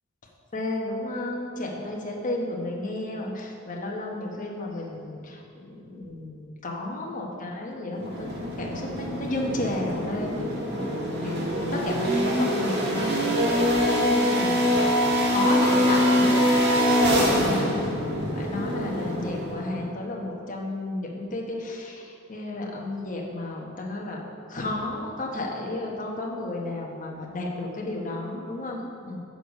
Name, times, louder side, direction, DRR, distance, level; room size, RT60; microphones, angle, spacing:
voice 1, 0.5-16.4 17.4-17.8 18.3-24.2 24.5-29.2, left 2 dB, 40° left, -1 dB, 1.2 m, -32 dB
sound 1, 8.0-19.8, equal, 60° right, 1.5 m, -24 dB
6.7 x 6.6 x 5.3 m, 2.5 s
head